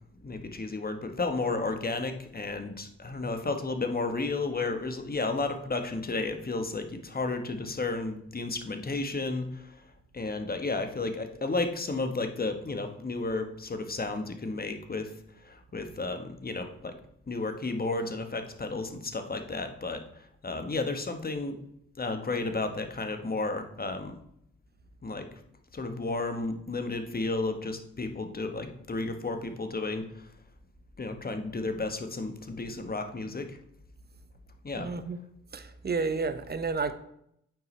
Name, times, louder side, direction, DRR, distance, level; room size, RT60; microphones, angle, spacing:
voice 1, 0.2-9.8 10.1-15.1 15.4-17.0 17.3-21.6 22.0-24.2 25.0-25.3 25.7-30.3 31.0-33.6 34.6-34.9, left 3 dB, 30° left, 6 dB, 1.3 m, -32 dB
voice 2, 34.7-35.2 35.5-36.9, right 4 dB, 35° right, 11 dB, 0.8 m, -31 dB
8.7 x 5.8 x 3.3 m, 0.74 s
supercardioid pair, 45°, 30 cm